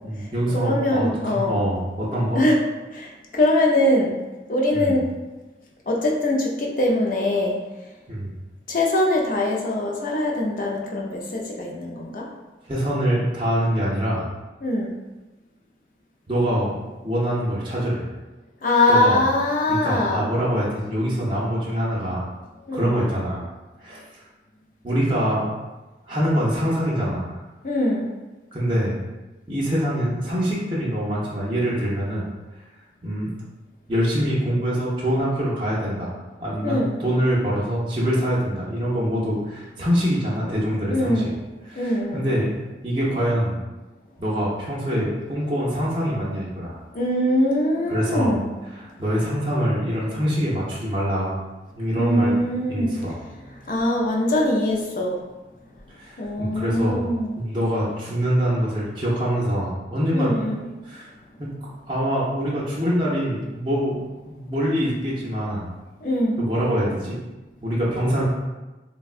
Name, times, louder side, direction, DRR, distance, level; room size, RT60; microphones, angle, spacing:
voice 1, 0.0-2.4 4.7-5.0 8.1-8.3 12.7-14.3 16.3-16.8 17.0-18.1 18.9-19.2 19.7-22.3 22.7-23.5 23.8-24.2 24.8-25.5 26.1-27.4 28.5-29.0 29.5-32.3 33.0-33.3 33.9-36.1 36.4-41.3 41.6-42.5 42.8-43.6 44.2-46.8 47.9-48.4 48.7-51.3 51.7-52.3 52.7-53.2 56.0-57.0 57.4-60.3 60.8-61.1 61.4-61.5 61.9-64.0 64.2-65.7 66.4-67.2 67.6-68.2, equal, 25° right, -7 dB, 0.5 m, -24 dB
voice 2, 0.5-1.6 2.3-2.6 2.9-4.2 4.5-5.1 5.9-7.6 8.7-12.3 14.6-14.9 18.6-20.3 22.7-23.0 27.6-28.1 36.6-37.0 40.9-41.3 41.8-42.2 46.9-48.5 51.9-53.0 53.7-55.2 56.2-57.4 60.1-60.7 66.0-66.5, left 1 dB, 45° left, -1 dB, 0.4 m, -22 dB
3.5 x 2.1 x 2.4 m, 1.1 s
head